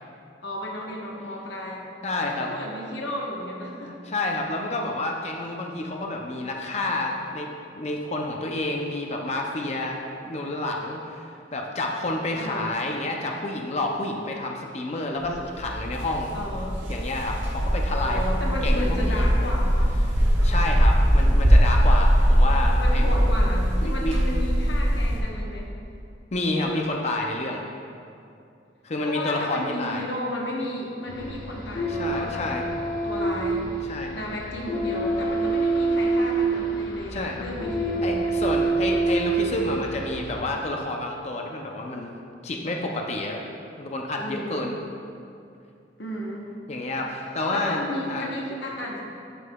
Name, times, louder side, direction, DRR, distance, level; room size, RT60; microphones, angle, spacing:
voice 1, 0.4-1.9 2.2-3.9 12.3-12.8 16.3-16.8 18.0-19.9 22.8-25.7 29.0-32.6 33.0-33.7 34.1-38.3 44.2-44.7 46.0-46.5 47.5-49.0, left 1 dB, 70° left, -2 dB, 1.0 m, -33 dB
voice 2, 2.0-2.5 3.8-7.5 7.7-16.4 16.9-18.3 18.6-19.2 20.0-20.1 20.4-23.1 23.8-24.1 26.3-27.6 28.8-30.0 31.9-32.6 33.9-34.2 37.1-37.4 38.0-42.1 42.4-43.4 43.8-44.7 46.7-47.8 48.1-48.3, left 2 dB, 35° left, 1 dB, 0.5 m, -29 dB
sound 1, 15.2-25.2, equal, 80° right, 1.4 m, -21 dB
sound 2, 31.1-40.4, right 3 dB, 50° left, 1.1 m, -27 dB
9.8 x 5.3 x 2.3 m, 2.5 s
head